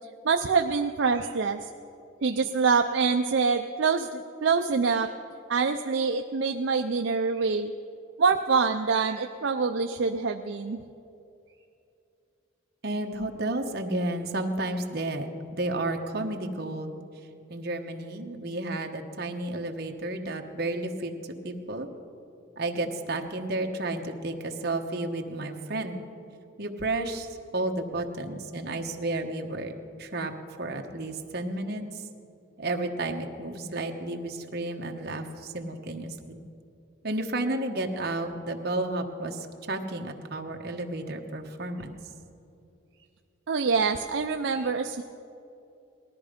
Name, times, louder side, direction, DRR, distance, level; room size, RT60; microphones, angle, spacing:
voice 1, 0.2-1.6 2.2-5.1 5.5-7.7 8.2-10.8 43.5-45.0, right 5 dB, 65° right, 5 dB, 0.5 m, -25 dB
voice 2, 12.8-17.0 17.5-21.1 21.4-21.9 22.6-26.0 26.6-27.3 27.5-29.7 30.0-30.3 30.6-32.0 32.6-36.4 37.0-42.0, right 2 dB, 50° right, 3 dB, 1.2 m, -32 dB
19.0 x 13.0 x 5.2 m, 2.7 s
head